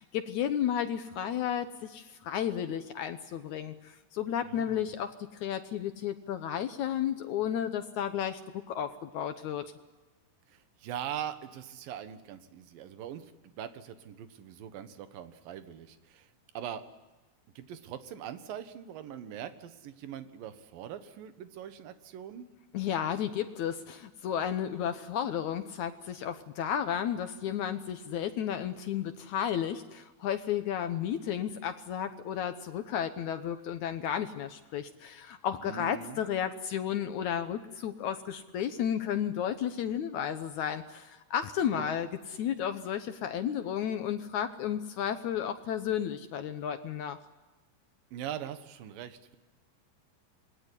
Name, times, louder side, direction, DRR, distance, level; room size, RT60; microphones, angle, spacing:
voice 1, 0.0-5.1 5.4-8.4 8.7-9.6 22.7-47.2, left 9 dB, 80° left, 9 dB, 1.7 m, -33 dB
voice 2, 4.4-4.8 10.5-16.3 16.5-16.8 17.6-22.5 35.6-36.2 41.6-41.9 48.1-49.4, right 10 dB, 65° right, 10 dB, 2.9 m, -42 dB
27.0 x 21.0 x 9.9 m, 1.1 s
omnidirectional pair, 4.8 m